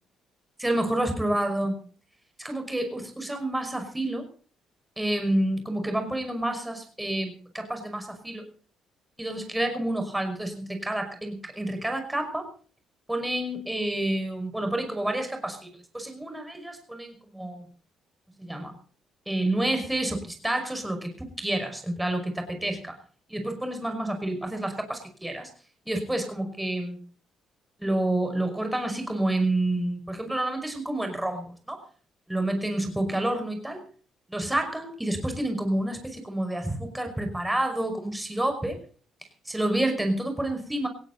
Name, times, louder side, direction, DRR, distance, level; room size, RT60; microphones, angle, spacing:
voice 1, 0.6-1.8 2.4-4.3 5.0-8.4 9.2-12.5 13.1-17.7 18.4-18.7 19.3-23.0 23.3-25.5 25.9-27.0 27.8-31.8 32.3-33.8 34.3-38.8 39.5-40.9, right 1 dB, 10° right, 5 dB, 5.5 m, -29 dB
18.5 x 16.5 x 4.0 m, 0.42 s
supercardioid pair, 65°, 0 cm